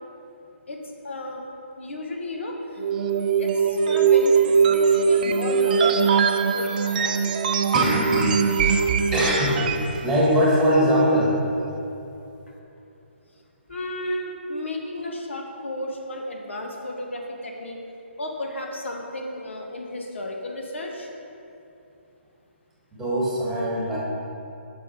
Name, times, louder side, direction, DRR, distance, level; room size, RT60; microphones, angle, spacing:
voice 1, 0.7-1.4 1.8-2.8 3.4-7.2 13.7-17.8 18.2-21.1, left 1 dB, 75° left, 1 dB, 1.1 m, -33 dB
sound 1, 2.8-10.0, right 6 dB, 45° right, 0.3 m, -21 dB
voice 2, 7.7-8.8 9.1-11.4 22.9-24.0, equal, 5° right, -6 dB, 1.6 m, -22 dB
6.2 x 5.7 x 4.3 m, 2.9 s
figure-of-eight pair, 140°, 7 cm